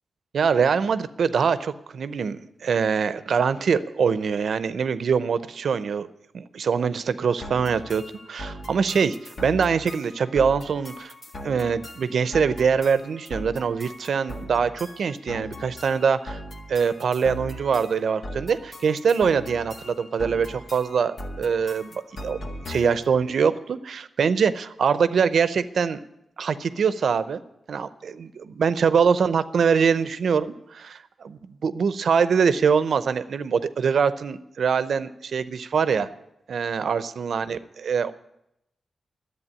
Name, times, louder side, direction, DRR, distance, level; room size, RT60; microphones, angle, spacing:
voice 1, 0.3-6.1 6.3-9.2 9.4-11.1 11.4-16.4 16.7-22.4 22.7-26.0 26.4-27.4 27.7-36.1 36.5-38.1, right 6 dB, 80° right, 14 dB, 0.6 m, -23 dB
sound 1, 7.4-23.1, left 1 dB, 60° left, 1.7 m, -39 dB
11.0 x 8.1 x 9.8 m, 0.84 s
cardioid pair, 65°, 0 cm